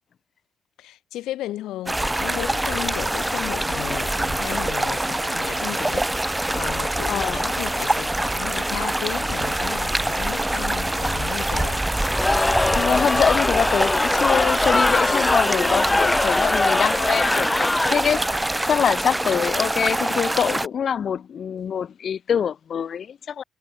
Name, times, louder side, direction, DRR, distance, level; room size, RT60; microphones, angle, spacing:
voice 1, 0.8-6.1 6.5-11.9, left 14 dB, 85° left, 3.3 m, -34 dB
sound 1, 1.9-20.7, right 1 dB, 10° right, 0.4 m, -25 dB
sound 2, 3.2-5.7, right 7 dB, 55° right, 4.2 m, -48 dB
voice 2, 7.1-7.5 12.5-23.4, left 8 dB, 55° left, 0.9 m, -25 dB
Cheering / Crowd, 12.0-18.3, left 2 dB, 15° left, 1.0 m, -22 dB
cardioid pair, 90°, 0 cm